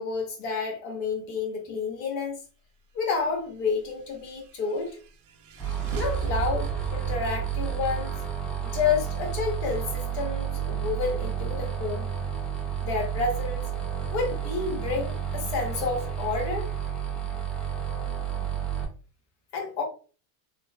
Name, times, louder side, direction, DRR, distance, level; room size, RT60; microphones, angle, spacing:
voice 1, 0.0-2.4 2.9-5.0 5.9-8.2 8.6-12.1 12.8-13.6 14.1-16.7 19.5-19.8, left 5 dB, 80° left, 1.1 m, -30 dB
sound 1, 3.8-9.4, right 3 dB, 45° right, 0.6 m, -39 dB
sound 2, 5.6-18.8, right 9 dB, ahead, 0.7 m, -31 dB
3.0 x 2.0 x 2.2 m
supercardioid pair, 110°, 43 cm